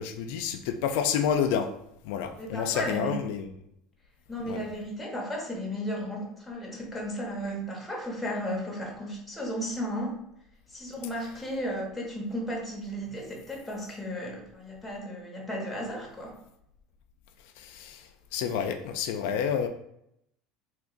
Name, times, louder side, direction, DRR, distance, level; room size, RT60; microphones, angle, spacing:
voice 1, 0.0-1.7 2.0-3.5 4.5-4.6 17.6-18.0 18.3-19.7, left 7 dB, 75° left, 6 dB, 0.3 m, -29 dB
voice 2, 2.4-3.2 4.3-10.2 10.7-16.3, equal, 5° left, -2 dB, 0.9 m, -34 dB
2.9 x 2.5 x 3.7 m, 0.77 s
cardioid pair, 140°, 0 cm